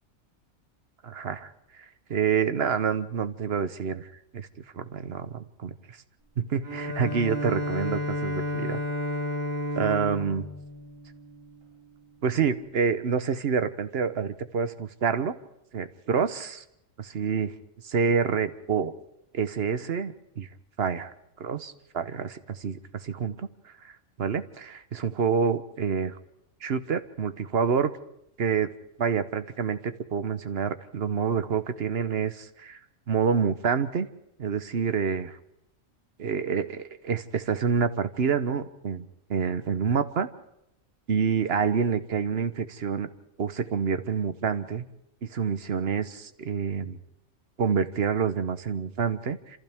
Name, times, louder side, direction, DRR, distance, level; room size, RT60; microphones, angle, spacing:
voice 1, 1.0-1.5 2.1-4.1 4.3-4.5 4.7-6.0 6.4-8.8 9.8-10.5 12.2-15.3 15.7-16.6 17.0-17.5 17.8-18.9 19.3-20.5 20.8-21.1 21.4-23.9 24.2-26.2 26.6-27.9 28.4-28.7 29.0-32.8 33.1-34.1 34.4-35.4 36.2-39.0 39.3-40.3 41.1-43.1 43.4-44.9 45.3-47.0 47.6-49.6, right 6 dB, 55° right, 11 dB, 1.1 m, -27 dB
Bowed string instrument, 6.6-11.7, left 1 dB, 85° right, 5.5 m, -32 dB
27.5 x 27.0 x 3.6 m, 0.83 s
omnidirectional pair, 1.4 m